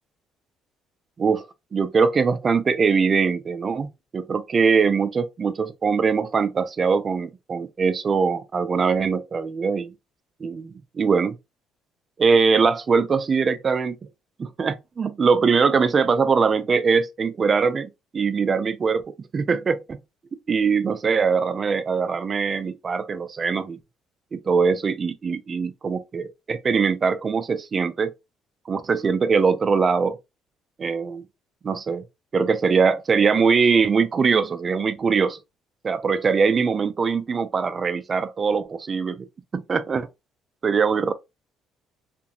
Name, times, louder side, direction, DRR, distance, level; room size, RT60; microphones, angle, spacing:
voice 1, 1.7-9.9 10.4-11.4 12.2-14.0 14.4-20.0 20.5-23.8 24.3-28.1 28.7-30.2 30.8-31.2 31.6-32.0 32.3-35.4 35.8-39.3 39.5-40.1 40.6-41.1, right 5 dB, 35° right, 0.4 m, -22 dB
2.7 x 2.5 x 2.3 m
cardioid pair, 105°, 0 cm